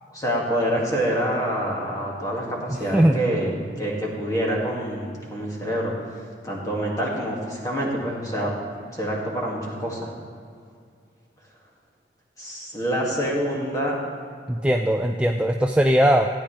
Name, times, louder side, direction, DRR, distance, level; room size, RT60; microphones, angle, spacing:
voice 1, 0.1-5.9 6.4-8.5 8.9-10.1 12.4-14.0, equal, 20° left, -3 dB, 2.1 m, -26 dB
voice 2, 14.5-16.3, equal, 5° right, 3 dB, 0.3 m, -19 dB
16.5 x 9.6 x 3.3 m, 2.3 s
head